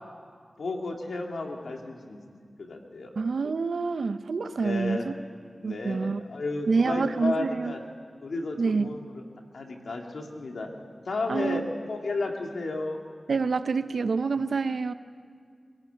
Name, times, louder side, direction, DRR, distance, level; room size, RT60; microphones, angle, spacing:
voice 1, 0.6-2.2 2.6-3.1 4.6-5.0 5.5-7.8 8.2-9.2 9.5-10.7 11.1-13.0, left 3 dB, 85° left, 2 dB, 2.5 m, -33 dB
voice 2, 3.2-5.1 5.6-6.2 6.7-7.7 8.6-9.0 11.3-11.7 13.3-14.9, right 4 dB, 85° right, 11 dB, 0.8 m, -27 dB
23.0 x 16.0 x 9.3 m, 2.1 s
cardioid pair, 45°, 0 cm